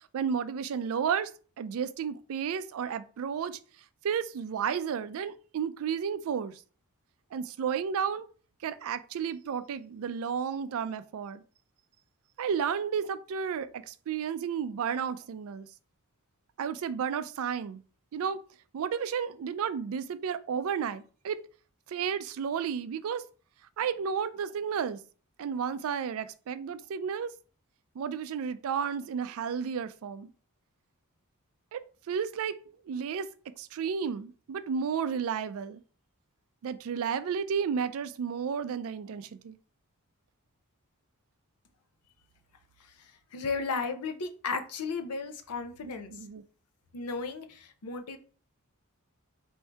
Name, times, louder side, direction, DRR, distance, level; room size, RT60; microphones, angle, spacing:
voice 1, 0.1-1.3 1.6-3.6 4.0-6.5 7.3-8.3 8.6-11.4 12.4-15.7 16.6-17.8 18.1-18.4 18.7-21.4 21.9-23.2 23.8-25.0 25.4-27.3 28.0-30.3 31.7-31.8 32.1-32.6 32.9-33.3 33.6-35.8 36.6-39.6 46.1-46.4, right 7 dB, 65° right, 0.3 m, -32 dB
voice 2, 43.3-46.1 46.9-48.2, left 4 dB, 90° left, 0.6 m, -34 dB
4.4 x 2.6 x 3.4 m
head